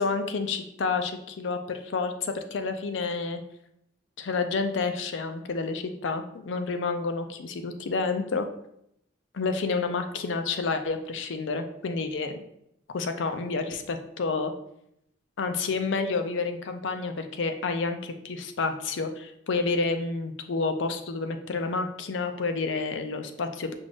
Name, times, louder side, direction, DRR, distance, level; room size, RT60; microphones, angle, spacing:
voice 1, 0.0-3.4 4.2-8.5 9.3-12.4 12.9-14.5 15.4-23.7, left 4 dB, 75° left, 7 dB, 0.5 m, -29 dB
5.3 x 2.5 x 3.5 m, 0.76 s
head